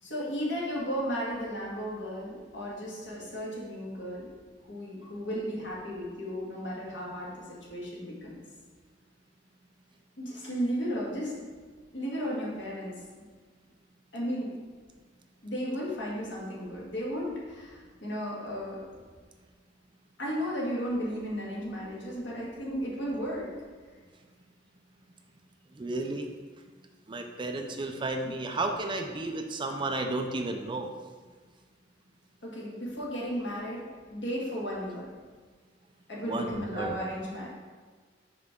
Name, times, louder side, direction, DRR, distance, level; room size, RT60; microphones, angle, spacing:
voice 1, 0.0-4.3 4.7-8.4 10.2-11.5 11.9-13.0 14.1-14.5 15.4-18.8 20.2-23.5 28.2-28.3 32.4-33.9 34.1-35.1 36.1-37.5, equal, 70° left, -5 dB, 1.8 m, -34 dB
voice 2, 25.7-26.3 27.1-30.9 36.3-37.0, right 2 dB, 25° right, 4 dB, 0.4 m, -32 dB
5.9 x 5.2 x 3.7 m, 1.5 s
head